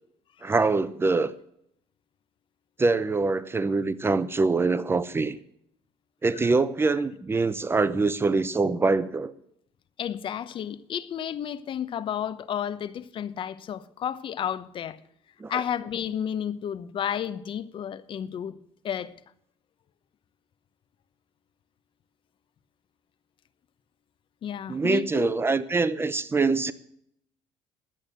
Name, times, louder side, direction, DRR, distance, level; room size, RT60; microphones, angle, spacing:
voice 1, 0.4-1.3 2.8-5.4 6.2-9.3 15.4-15.6 24.7-26.7, right 3 dB, 20° right, 0.7 m, -24 dB
voice 2, 10.0-15.0 15.5-18.5 18.8-19.1 24.4-25.3, left 9 dB, 50° left, 0.9 m, -32 dB
11.0 x 8.7 x 7.8 m
cardioid pair, 100°, 11 cm